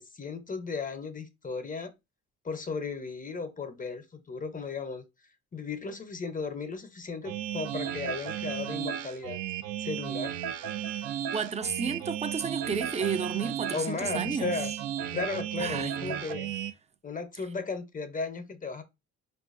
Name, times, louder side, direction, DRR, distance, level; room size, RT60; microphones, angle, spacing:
voice 1, 0.0-1.9 2.4-5.0 5.5-9.4 9.8-10.3 13.7-14.7 15.1-16.5 17.0-18.8, left 4 dB, 30° left, 0.6 m, -35 dB
sound 1, 7.2-16.7, right 10 dB, 80° right, 0.5 m, -34 dB
voice 2, 11.3-14.5 15.6-16.2, right 5 dB, 25° right, 0.4 m, -32 dB
4.5 x 2.3 x 2.5 m
cardioid pair, 90°, 30 cm